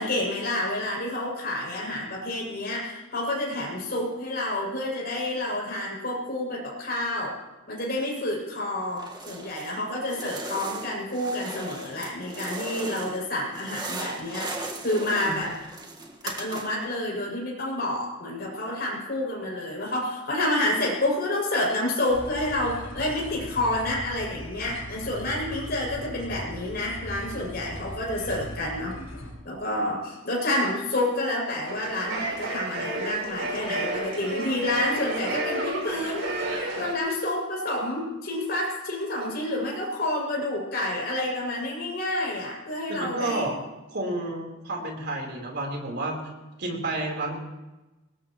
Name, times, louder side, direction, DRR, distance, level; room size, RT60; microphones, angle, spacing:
voice 1, 0.0-7.4 7.7-15.5 16.2-29.0 29.4-43.5, left 1 dB, 50° left, -3 dB, 7.0 m, -29 dB
sound 1, 8.9-9.8 10.1-13.2 13.5-16.9, right 2 dB, 20° right, 1.7 m, -38 dB
sound 2, 22.1-29.3, equal, 85° left, 5.4 m, -39 dB
sound 3, 31.7-36.9, right 1 dB, 75° right, 4.3 m, -31 dB
voice 2, 42.9-43.6 43.9-46.2 46.6-47.4, right 2 dB, 55° right, 0 dB, 4.0 m, -30 dB
23.0 x 20.0 x 3.1 m, 1.1 s
head